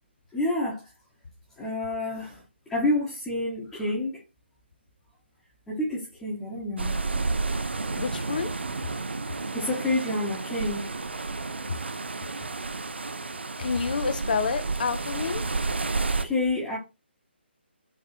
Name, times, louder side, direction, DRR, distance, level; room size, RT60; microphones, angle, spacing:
voice 1, 0.3-0.9 1.6-4.2 5.7-7.0 9.3-10.9 16.2-16.8, left 2 dB, 5° left, 1.0 m, -29 dB
sound 1, 6.8-16.2, right 3 dB, 65° right, 0.5 m, -31 dB
voice 2, 8.0-8.5 11.7-11.8 13.6-15.5, left 5 dB, 45° left, 0.5 m, -28 dB
4.0 x 2.9 x 2.7 m
figure-of-eight pair, 140°, 6 cm